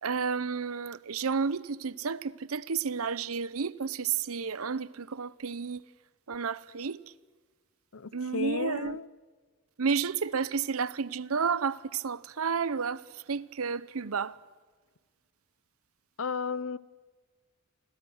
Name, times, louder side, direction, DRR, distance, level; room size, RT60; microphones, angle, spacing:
voice 1, 0.0-5.8 6.3-7.0 8.1-9.0 9.8-13.0 13.3-14.3, right 5 dB, 80° right, 0.7 m, -31 dB
voice 2, 7.9-9.1 16.2-16.8, left 5 dB, 70° left, 0.8 m, -33 dB
30.0 x 25.5 x 6.4 m
head